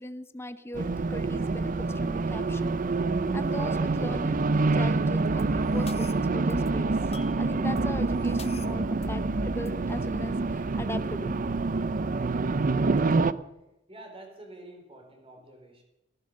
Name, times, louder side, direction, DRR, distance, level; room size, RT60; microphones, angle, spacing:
voice 1, 0.0-2.7 3.3-6.9 7.4-11.4, left 1 dB, 15° left, 11 dB, 0.8 m, -39 dB
Race car auto racing, 0.7-13.3, right 3 dB, 45° right, 0.5 m, -27 dB
sound 1, 5.3-10.9, left 1 dB, 35° left, 1.0 m, -40 dB
voice 2, 13.9-15.8, right 1 dB, 30° right, 3 dB, 4.0 m, -48 dB
15.0 x 13.5 x 6.6 m, 0.92 s
head